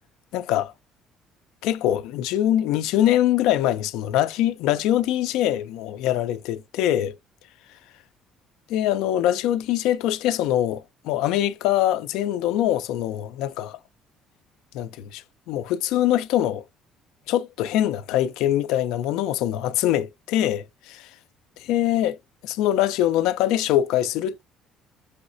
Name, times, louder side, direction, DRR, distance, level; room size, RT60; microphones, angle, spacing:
voice 1, 0.3-0.7 1.6-7.1 8.7-13.8 14.7-16.6 17.3-21.1 21.6-22.2 22.4-24.4, left 12 dB, 85° left, 0.5 m, -23 dB
5.6 x 3.1 x 2.6 m
cardioid pair, 125°, 0 cm